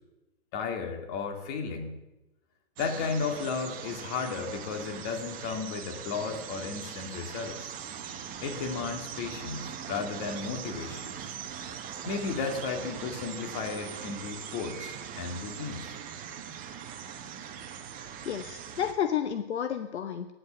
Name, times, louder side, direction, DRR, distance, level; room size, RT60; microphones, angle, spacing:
voice 1, 0.5-2.0 2.8-7.7 8.4-11.1 12.0-15.9, left 5 dB, 35° left, 4 dB, 2.4 m, -34 dB
sound 1, 2.8-18.9, right 8 dB, 25° right, 1.2 m, -41 dB
voice 2, 18.3-20.3, left 9 dB, 70° left, 9 dB, 0.9 m, -31 dB
9.8 x 8.0 x 8.8 m, 1.0 s
hypercardioid pair, 125°, 35 cm